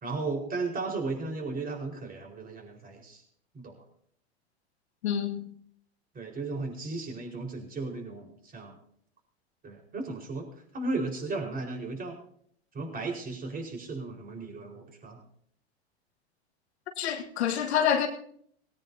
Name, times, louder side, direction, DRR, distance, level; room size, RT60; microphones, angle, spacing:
voice 1, 0.0-3.2 3.5-3.8 6.1-8.8 9.6-10.5 10.7-12.2 12.7-15.2, right 3 dB, 25° right, 1 dB, 4.8 m, -35 dB
voice 2, 5.0-5.5 17.0-18.1, left 8 dB, 75° left, 4 dB, 1.7 m, -27 dB
18.5 x 17.5 x 2.8 m, 0.64 s
hypercardioid pair, 95°, 32 cm